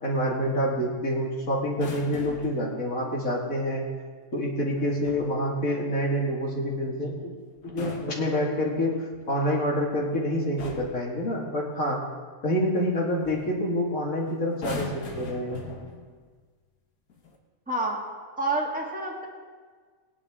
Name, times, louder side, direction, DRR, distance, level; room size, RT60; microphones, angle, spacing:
voice 1, 0.0-3.8 4.3-7.3 7.6-8.9 9.3-12.0 12.4-15.6, equal, 65° left, -3 dB, 2.5 m, -27 dB
sound 1, 1.7-2.7 4.8-5.4 7.5-8.9 9.9-10.2 10.6-11.1 12.8-12.9 13.2-13.6 14.5-16.2 17.1-17.4, left 3 dB, 85° left, 1.7 m, -40 dB
voice 2, 17.7-18.0 18.4-19.3, right 2 dB, 5° right, -2 dB, 1.7 m, -28 dB
19.0 x 10.0 x 3.7 m, 1.6 s
omnidirectional pair, 1.6 m